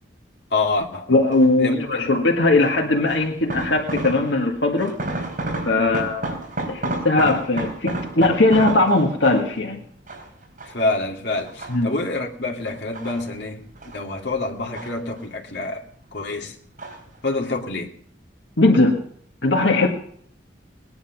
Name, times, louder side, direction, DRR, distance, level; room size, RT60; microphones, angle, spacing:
voice 1, 0.5-1.1 1.6-2.2 5.7-6.1 10.6-13.7 13.9-15.8 16.1-16.5 17.2-17.9, left 3 dB, 60° left, 2.4 m, -27 dB
voice 2, 1.1-5.0 5.7-6.3 6.7-9.9 11.7-11.9 18.6-19.0 19.4-19.9, left 2 dB, 80° left, 1.8 m, -19 dB
sound 1, 1.3-1.7 2.6-4.5 4.8-9.6 10.1-10.9 11.4-12.2 12.7-14.0 14.3-15.5 15.8-16.4 16.8-17.2 17.4-17.5, right 2 dB, 50° right, 4.2 m, -31 dB
20.0 x 10.5 x 5.9 m
head